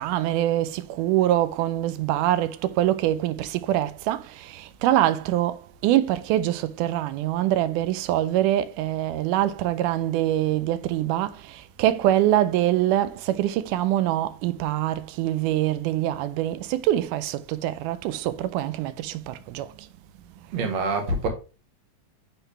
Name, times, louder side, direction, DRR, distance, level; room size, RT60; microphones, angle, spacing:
voice 1, 0.0-19.9, right 13 dB, 85° right, 2.0 m, -24 dB
voice 2, 20.5-21.3, right 3 dB, 60° right, 2.3 m, -25 dB
8.3 x 3.9 x 3.3 m
omnidirectional pair, 3.6 m